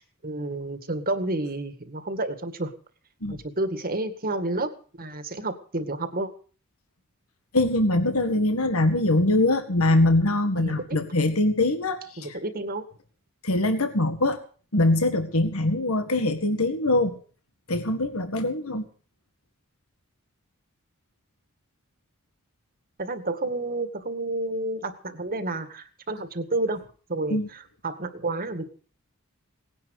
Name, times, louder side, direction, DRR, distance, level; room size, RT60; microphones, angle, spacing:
voice 1, 0.0-2.7 3.3-4.7 5.0-6.3 10.6-10.9 12.2-12.9 23.0-28.7, right 2 dB, 45° right, 9 dB, 2.0 m, -30 dB
voice 2, 7.5-12.4 13.4-14.4 14.7-17.2 17.7-18.9 27.3-27.5, left 2 dB, 80° left, 8 dB, 1.9 m, -23 dB
19.0 x 10.5 x 6.5 m, 0.41 s
head